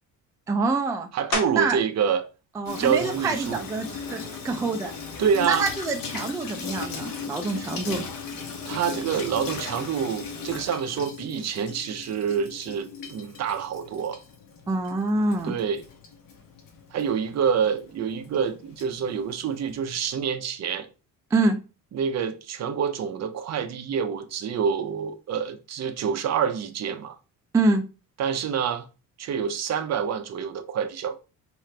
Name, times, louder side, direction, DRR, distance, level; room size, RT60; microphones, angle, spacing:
voice 1, 0.5-1.1 1.5-1.8 2.6-4.9 5.5-8.0 14.7-15.5 21.3-21.6 27.5-27.8, right 3 dB, 10° right, 0.3 m, -25 dB
voice 2, 1.1-2.3 2.8-3.6 5.2-5.7 8.6-14.2 15.4-15.8 16.9-20.9 21.9-27.2 28.2-28.9 29.2-31.2, right 7 dB, 50° right, 0.6 m, -27 dB
sound 1, 1.3-1.9 2.5-6.9 7.4-12.6 12.9-18.5, left 2 dB, 55° left, 1.9 m, -41 dB
Water tap faucet / Sink (filling or washing), 2.7-20.1, left 5 dB, 90° left, 1.1 m, -38 dB
4.8 x 3.0 x 3.2 m
cardioid pair, 140°, 34 cm